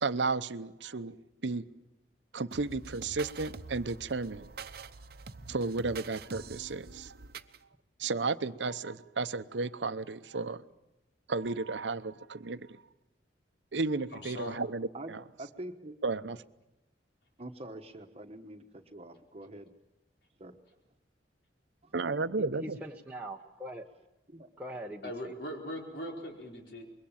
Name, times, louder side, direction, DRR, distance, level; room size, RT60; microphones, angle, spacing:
voice 1, 0.0-1.2 1.4-1.6 2.3-4.5 5.5-7.1 8.0-10.6 11.3-12.8 13.7-15.2 16.0-16.4 21.9-22.8, right 3 dB, 85° right, 0.8 m, -33 dB
sound 1, 2.5-7.6, right 4 dB, 60° right, 0.9 m, -46 dB
voice 2, 14.1-14.6 25.0-26.8, left 1 dB, 70° left, 4.8 m, -40 dB
voice 3, 15.4-16.0 17.4-19.7 20.4-20.6 21.8-21.9 24.3-24.5, right 1 dB, 35° right, 1.2 m, -45 dB
voice 4, 22.6-23.9 24.6-25.3, equal, 10° right, 0.9 m, -42 dB
25.5 x 22.0 x 7.2 m
head